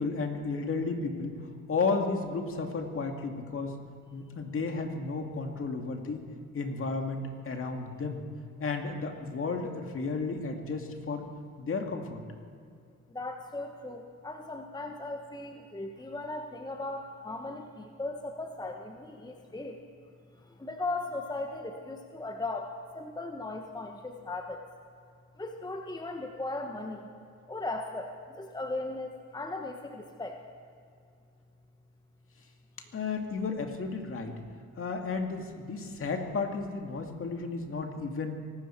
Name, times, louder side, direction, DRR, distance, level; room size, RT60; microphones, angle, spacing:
voice 1, 0.0-1.4 1.7-3.8 4.1-6.2 6.5-8.2 8.6-11.3 11.6-12.2 32.9-34.4 34.8-38.3, left 4 dB, 45° left, 4 dB, 2.1 m, -33 dB
voice 2, 13.1-19.8 20.4-24.6 25.4-27.1 27.5-30.4, left 2 dB, 15° left, 3 dB, 1.1 m, -37 dB
24.0 x 13.0 x 4.5 m, 2.4 s
cardioid pair, 90°, 30 cm